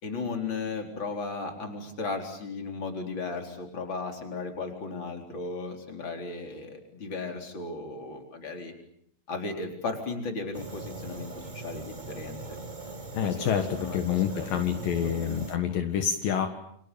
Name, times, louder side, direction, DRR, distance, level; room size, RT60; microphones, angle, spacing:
voice 1, 0.0-8.7 9.3-12.4 13.2-15.4, left 3 dB, 30° left, 4 dB, 4.5 m, -36 dB
Fire, 10.5-15.6, right 3 dB, 25° right, 1.0 m, -41 dB
voice 2, 13.1-13.7 13.9-16.5, left 8 dB, 70° left, 6 dB, 3.2 m, -27 dB
29.5 x 26.0 x 7.0 m, 0.69 s
omnidirectional pair, 4.2 m